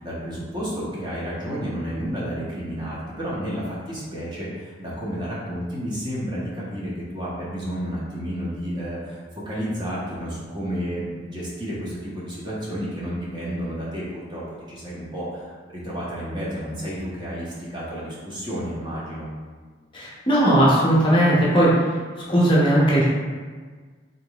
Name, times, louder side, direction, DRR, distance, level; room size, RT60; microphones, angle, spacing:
voice 1, 0.0-14.4 14.7-19.3, equal, 25° right, -7 dB, 0.9 m, -31 dB
voice 2, 19.9-21.7 22.3-23.1, right 1 dB, 25° left, -7 dB, 0.7 m, -18 dB
3.7 x 3.6 x 2.3 m, 1.5 s
head